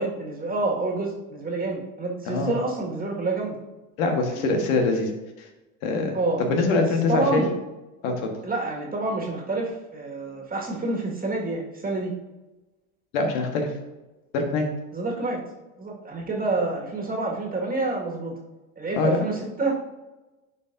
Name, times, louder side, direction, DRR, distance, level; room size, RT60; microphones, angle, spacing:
voice 1, 0.0-3.6 4.3-4.6 6.1-6.5 6.8-7.5 8.4-12.1 14.9-15.4 15.8-18.3 18.8-19.7, right 3 dB, 20° right, -1 dB, 1.9 m, -28 dB
voice 2, 4.0-5.1 5.4-5.5 5.8-7.4 8.0-8.3 13.1-13.7 14.3-14.7 19.0-19.2, left 3 dB, 70° left, 3 dB, 1.5 m, -24 dB
10.5 x 4.4 x 2.6 m, 1.1 s
hypercardioid pair, 90°, 42 cm